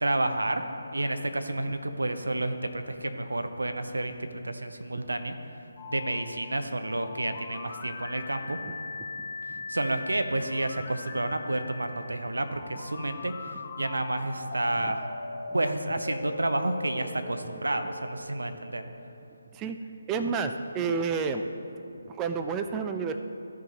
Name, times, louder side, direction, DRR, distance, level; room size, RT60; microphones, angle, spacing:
voice 1, 0.0-0.6 0.9-4.2 4.4-5.4 5.8-8.6 9.7-13.3 13.8-15.1 15.5-18.8, right 1 dB, 75° right, 7 dB, 0.6 m, -30 dB
sound 1, 5.8-19.6, left 3 dB, 35° left, 0.8 m, -41 dB
voice 2, 20.1-21.5 22.0-23.2, right 5 dB, 15° right, 7 dB, 0.3 m, -30 dB
14.0 x 6.0 x 2.9 m, 2.7 s
figure-of-eight pair, 150°, 0 cm